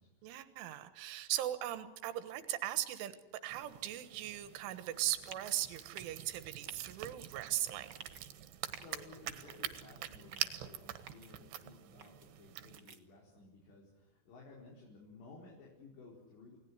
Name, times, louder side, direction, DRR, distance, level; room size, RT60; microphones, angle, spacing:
voice 1, 0.2-7.9, right 13 dB, 90° right, 12 dB, 3.9 m, -39 dB
sound 1, 3.5-12.8, right 12 dB, 70° right, 3.4 m, -46 dB
sound 2, 5.3-5.5 5.9-6.2 6.7-6.8 7.8-8.2 8.7-9.0 9.5-9.8 10.3-10.6 11.1-11.3 12.0-12.3 12.7-13.0, right 6 dB, 50° right, 1.5 m, -51 dB
voice 2, 8.7-16.6, left 3 dB, 65° left, -2 dB, 6.8 m, -56 dB
30.0 x 19.0 x 9.6 m, 0.93 s
omnidirectional pair, 5.4 m